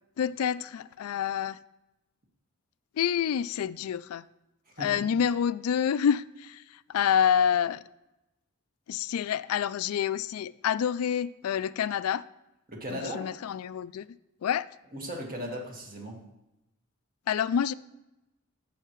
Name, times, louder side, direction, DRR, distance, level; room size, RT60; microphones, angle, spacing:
voice 1, 0.2-1.6 3.0-4.2 4.8-6.6 6.9-7.8 8.9-12.2 12.9-14.1 14.4-14.7 17.3-17.7, left 8 dB, 85° left, 0.3 m, -27 dB
voice 2, 4.7-5.1 12.7-13.3 14.9-16.3, equal, 40° right, 1.6 m, -37 dB
14.5 x 5.7 x 3.1 m
head